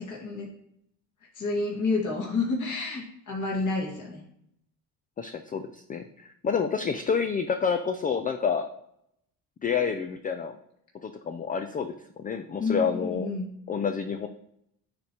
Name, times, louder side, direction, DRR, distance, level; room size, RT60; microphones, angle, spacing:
voice 1, 0.1-0.5 1.4-4.2 12.6-13.5, left 3 dB, 40° left, -3 dB, 2.0 m, -29 dB
voice 2, 5.2-8.7 9.6-10.6 11.0-13.3 13.7-14.3, left 6 dB, 20° left, 8 dB, 0.3 m, -29 dB
10.5 x 3.5 x 2.9 m, 0.75 s
hypercardioid pair, 55°, 47 cm